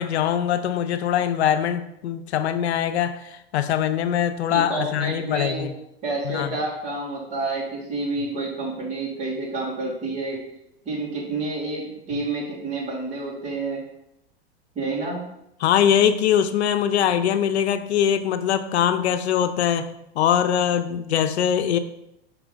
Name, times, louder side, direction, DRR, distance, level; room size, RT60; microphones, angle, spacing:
voice 1, 0.0-5.7 6.2-6.6 15.6-21.8, left 9 dB, 90° left, 10 dB, 0.6 m, -22 dB
voice 2, 4.5-5.7 6.0-10.4 10.9-13.8 14.8-15.2, right 2 dB, 20° right, -4 dB, 2.0 m, -29 dB
5.6 x 4.7 x 3.9 m, 0.81 s
supercardioid pair, 155°, 32 cm